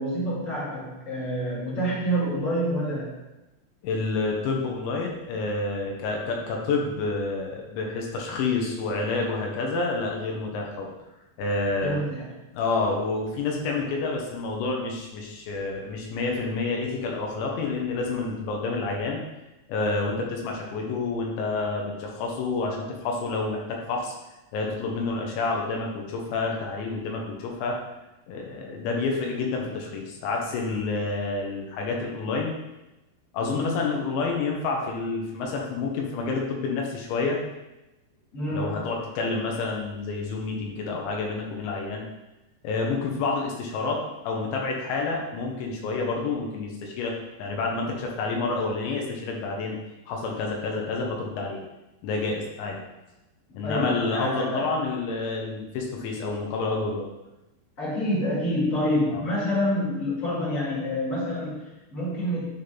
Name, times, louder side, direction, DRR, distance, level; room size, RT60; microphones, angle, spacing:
voice 1, 0.0-3.1 11.8-12.3 33.4-33.9 38.3-38.9 53.6-54.8 57.8-62.4, equal, 45° left, -7 dB, 1.0 m, -27 dB
voice 2, 3.8-10.9 11.4-12.1 12.5-19.2 19.7-24.1 24.5-27.8 28.3-32.5 33.3-37.4 38.5-42.0 42.6-47.1 47.4-49.8 50.1-51.6 52.0-52.8 53.5-57.1 59.1-59.2, left 3 dB, 85° left, 0 dB, 3.2 m, -29 dB
10.0 x 3.5 x 3.7 m, 0.98 s
omnidirectional pair, 5.1 m